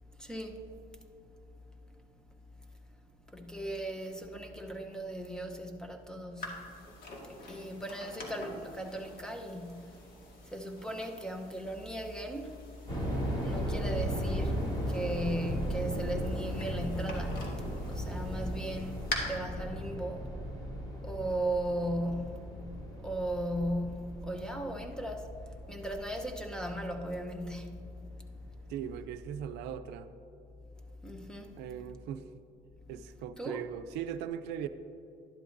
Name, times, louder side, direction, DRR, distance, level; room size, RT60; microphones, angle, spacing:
voice 1, 0.2-0.7 3.3-6.6 7.3-10.0 10.4-12.6 13.4-20.3 21.0-22.4 22.9-25.4 25.7-27.8 31.0-31.6 33.4-33.6, right 1 dB, 5° left, 0.8 m, -37 dB
sound 1, 6.4-19.2, left 2 dB, 60° left, 1.9 m, -46 dB
sound 2, 12.9-27.7 28.0-28.1 28.7-29.0, equal, 25° left, 2.4 m, -37 dB
voice 2, 28.7-30.1 31.6-32.3 32.9-34.7, right 9 dB, 90° right, 0.5 m, -39 dB
12.0 x 11.0 x 2.6 m
cardioid pair, 110°, 17 cm